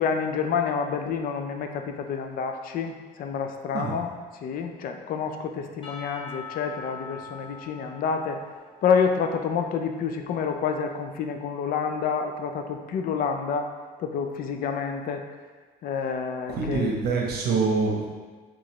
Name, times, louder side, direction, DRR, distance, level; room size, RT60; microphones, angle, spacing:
voice 1, 0.0-4.1 4.4-8.4 8.8-13.7 14.0-15.3 15.8-16.9, left 6 dB, 60° left, 5 dB, 0.4 m, -28 dB
Percussion / Church bell, 5.8-9.8, left 4 dB, 30° left, 0.8 m, -43 dB
voice 2, 16.5-18.1, right 4 dB, 70° right, -1 dB, 0.9 m, -25 dB
4.0 x 3.1 x 3.1 m, 1.4 s
cardioid pair, 110°, 17 cm